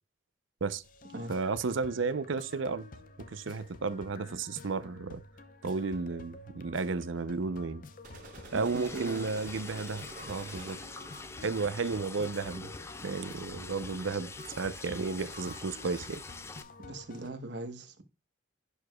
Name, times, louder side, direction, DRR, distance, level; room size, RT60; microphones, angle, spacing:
sound 1, 0.8-17.3, left 2 dB, 45° left, 0.7 m, -50 dB
voice 1, 1.3-2.9 3.3-5.2 5.6-7.8 8.5-10.8 11.4-12.7 13.0-16.2, right 4 dB, 80° right, 0.6 m, -33 dB
sound 2, 8.0-11.2, right 2 dB, 40° right, 4.6 m, -50 dB
Liquid, 8.5-16.6, left 3 dB, 15° left, 0.3 m, -45 dB
voice 2, 8.5-9.3 16.8-18.0, right 2 dB, 60° right, 1.1 m, -40 dB
11.0 x 4.8 x 2.2 m
head